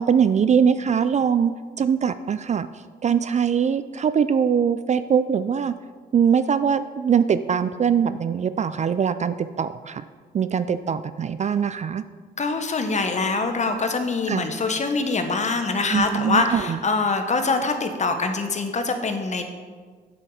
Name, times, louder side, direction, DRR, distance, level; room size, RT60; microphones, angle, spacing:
voice 1, 0.0-2.7 3.0-5.7 6.1-10.0 10.3-12.0 14.3-14.5 15.9-16.8, right 7 dB, 40° right, 13 dB, 0.4 m, -22 dB
voice 2, 12.4-19.5, left 3 dB, 40° left, 6 dB, 1.3 m, -24 dB
7.8 x 7.7 x 4.9 m, 1.5 s
supercardioid pair, 60°, 19 cm